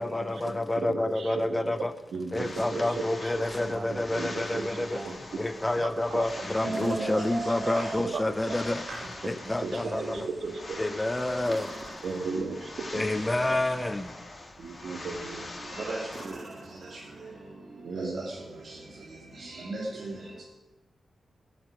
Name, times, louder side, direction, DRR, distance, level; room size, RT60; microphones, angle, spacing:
voice 1, 0.0-2.0 2.3-8.9 9.2-10.3 10.8-11.7 12.9-14.1, left 1 dB, 15° left, 11 dB, 0.7 m, -29 dB
voice 2, 0.8-1.7 2.1-3.0 4.1-4.9 5.8-6.3 6.7-6.8 7.1-7.6 8.0-8.6 9.6-9.7 10.0-10.1 10.4-10.8 12.0-13.0 14.6-15.5 17.8-18.2, right 4 dB, 70° right, 5 dB, 1.9 m, -35 dB
sound 1, 2.3-16.3, left 2 dB, 30° left, 2.8 m, -43 dB
sound 2, 2.4-3.0 3.5-4.1 4.5-5.2 6.7-8.0 11.4-12.7 15.2-15.6 16.1-17.5 19.6-19.7, right 3 dB, 35° right, 1.4 m, -45 dB
voice 3, 6.6-8.0 8.9-9.0 9.8-10.3 11.2-11.3 13.1-13.5 15.6-17.3 17.9-18.8 19.3-20.4, right 2 dB, 55° right, -5 dB, 3.0 m, -36 dB
13.5 x 8.6 x 9.7 m, 1.1 s
wide cardioid pair, 120°, 0 cm